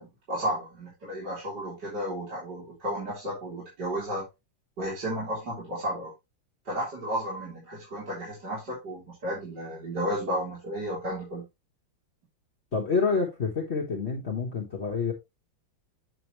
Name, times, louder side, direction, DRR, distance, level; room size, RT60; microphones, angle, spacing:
voice 1, 0.0-4.2 4.8-6.1 6.7-11.4, equal, 55° right, 3.7 m, -33 dB
voice 2, 12.7-15.1, left 5 dB, 40° left, 1.3 m, -28 dB
8.0 x 5.9 x 3.1 m
omnidirectional pair, 2.1 m